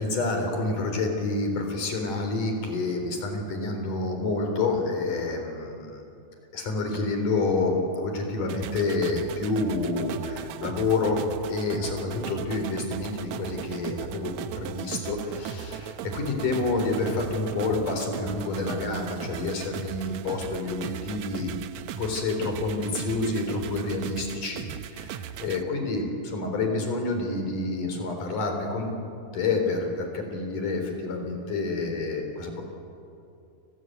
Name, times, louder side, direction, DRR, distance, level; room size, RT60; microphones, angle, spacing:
voice 1, 0.0-6.0 6.5-11.2 11.5-21.5 22.0-24.7 24.9-28.9 29.3-32.6, left 3 dB, 60° left, 4 dB, 5.3 m, -28 dB
sound 1, 8.5-25.6, right 10 dB, 80° right, 1.6 m, -38 dB
29.0 x 21.0 x 9.4 m, 2.6 s
omnidirectional pair, 4.2 m